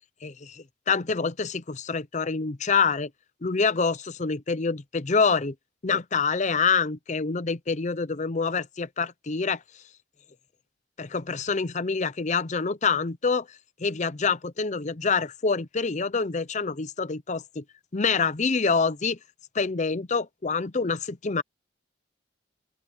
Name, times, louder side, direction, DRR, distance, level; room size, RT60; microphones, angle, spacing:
voice 1, 0.2-3.1 3.4-5.5 5.8-9.6 11.0-13.5 13.8-17.6 17.9-19.2 19.5-21.4, left 5 dB, 35° left, 0.7 m, -26 dB
open air
head